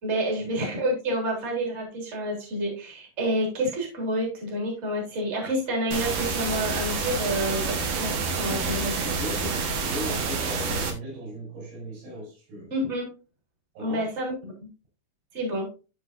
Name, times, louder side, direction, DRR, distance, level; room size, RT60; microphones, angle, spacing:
voice 1, 0.0-9.0 12.7-13.1 13.8-14.7 15.3-15.7, right 1 dB, 15° right, 3.2 m, -29 dB
sound 1, 5.9-10.9, right 4 dB, 60° right, 2.6 m, -28 dB
voice 2, 8.5-12.7 13.8-14.1, right 1 dB, 80° right, 7.1 m, -38 dB
14.0 x 5.1 x 2.7 m
omnidirectional pair, 5.2 m